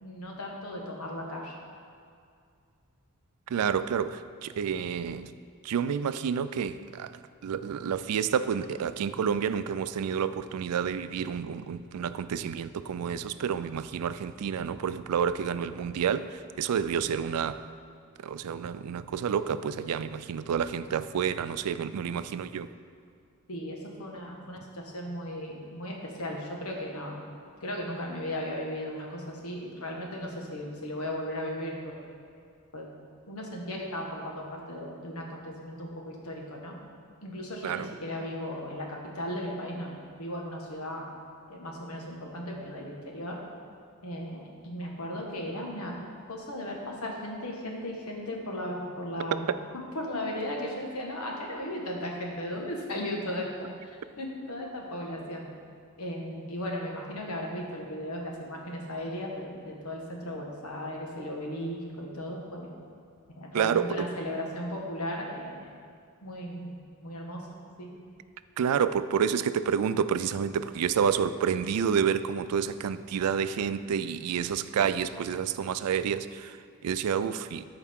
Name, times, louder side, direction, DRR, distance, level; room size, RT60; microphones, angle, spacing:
voice 1, 0.0-1.5 23.5-27.2 27.6-31.7 32.7-32.9 33.3-36.7 37.2-39.9 40.2-41.0 41.5-43.4 44.0-45.9 46.3-49.6 49.9-55.5 56.0-62.7 63.3-65.6 66.2-66.8 67.0-67.5 67.8-67.9, left 1 dB, 80° left, -1 dB, 1.4 m, -36 dB
voice 2, 3.5-5.3 5.6-17.6 18.2-22.7 37.6-37.9 49.3-49.6 63.5-64.1 68.6-76.6 76.8-77.6, right 7 dB, 90° right, 13 dB, 0.4 m, -29 dB
13.0 x 4.8 x 3.6 m, 2.3 s
head